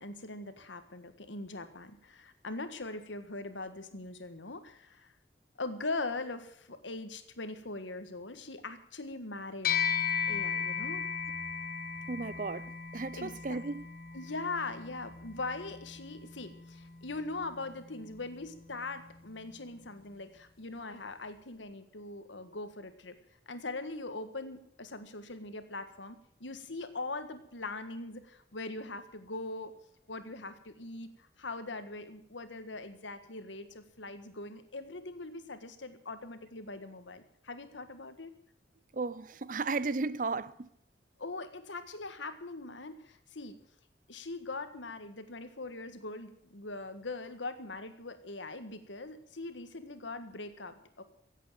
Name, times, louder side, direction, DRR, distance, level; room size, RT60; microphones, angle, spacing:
voice 1, 0.0-5.1 5.6-10.0 10.3-11.1 13.1-13.7 14.1-23.2 23.5-29.7 30.1-38.3 41.2-43.6 44.1-51.0, left 3 dB, 85° left, 1.6 m, -41 dB
sound 1, 9.6-19.3, left 7 dB, 50° left, 1.5 m, -37 dB
voice 2, 12.1-13.8 38.9-40.7, right 3 dB, 45° right, 0.6 m, -35 dB
16.0 x 8.3 x 9.0 m
head